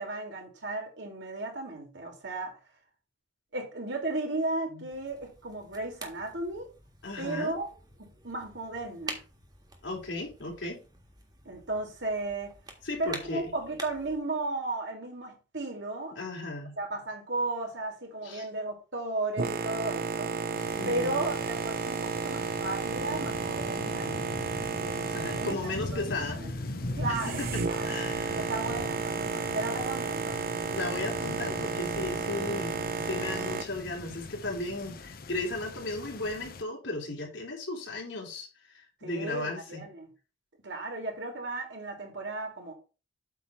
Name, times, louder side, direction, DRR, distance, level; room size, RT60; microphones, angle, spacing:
voice 1, 0.0-2.5 3.5-6.7 7.2-7.7 8.0-9.2 11.4-12.5 13.0-16.1 16.8-24.2 24.7-26.0 26.4-26.5 27.0-27.9 28.3-30.5 39.0-40.1 40.6-42.7, right 2 dB, 75° right, 2.9 m, -35 dB
sound 1, 4.9-14.2, right 3 dB, 25° right, 1.6 m, -47 dB
voice 2, 7.0-7.5 9.8-10.8 12.8-13.4 16.1-16.7 18.2-18.5 20.8-21.2 25.1-26.6 27.1-28.4 30.6-39.9, left 2 dB, 85° left, 2.8 m, -36 dB
Boat Water vehicle, 19.4-33.6, right 5 dB, 50° right, 0.6 m, -33 dB
sound 2, 20.6-36.6, left 2 dB, 55° left, 0.7 m, -41 dB
8.3 x 3.5 x 5.9 m
head